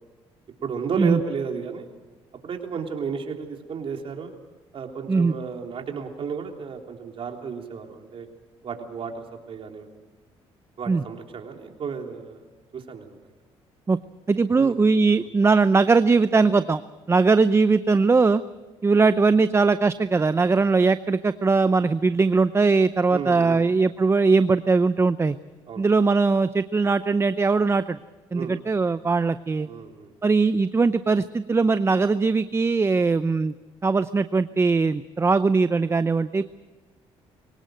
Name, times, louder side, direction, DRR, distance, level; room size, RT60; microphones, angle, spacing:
voice 1, 0.6-1.9 2.4-4.3 4.7-8.3 8.6-9.9 10.8-12.4 12.7-13.3 14.5-14.7 23.1-23.6 25.7-25.8 28.3-28.6 29.6-30.1, right 6 dB, 55° right, 3 dB, 3.5 m, -33 dB
voice 2, 14.3-16.8 17.1-18.4 18.8-25.4 25.8-28.0 28.3-29.7 30.2-33.5 33.8-36.4, right 4 dB, 25° right, 13 dB, 0.6 m, -20 dB
24.0 x 18.0 x 7.8 m, 1.2 s
cardioid pair, 85°, 11 cm